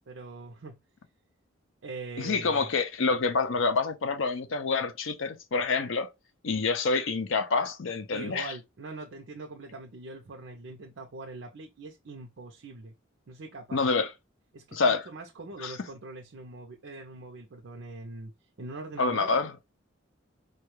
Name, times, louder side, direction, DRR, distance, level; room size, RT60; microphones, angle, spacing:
voice 1, 0.1-0.8 1.8-2.7 8.1-12.9 13.3-13.8 14.5-18.3 18.6-19.3, right 3 dB, 70° right, 0.6 m, -42 dB
voice 2, 2.2-6.1 6.4-8.5 13.7-14.1 14.7-15.1 15.6-15.7 19.0-19.5, left 4 dB, 75° left, 0.6 m, -27 dB
4.5 x 2.3 x 3.1 m
head